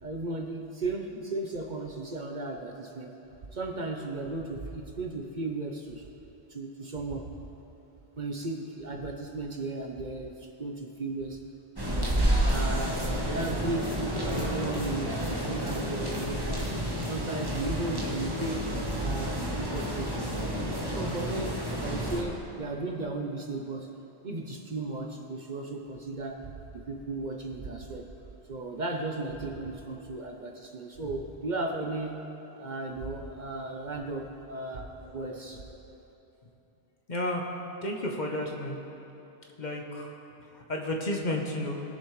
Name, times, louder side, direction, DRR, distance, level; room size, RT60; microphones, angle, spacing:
voice 1, 0.0-3.1 3.5-6.1 6.5-7.3 8.2-11.4 11.8-12.2 12.4-16.8 17.0-18.7 19.0-20.5 20.9-23.9 24.2-28.1 28.5-32.3 32.6-35.6, right 2 dB, 45° right, 2 dB, 0.8 m, -35 dB
sound 1, 11.8-22.2, equal, 20° right, 1.3 m, -30 dB
voice 2, 37.1-37.4 37.8-38.8 39.6-40.1 40.5-41.8, left 1 dB, 45° left, 0 dB, 1.1 m, -32 dB
20.5 x 7.0 x 3.2 m, 3.0 s
omnidirectional pair, 1.1 m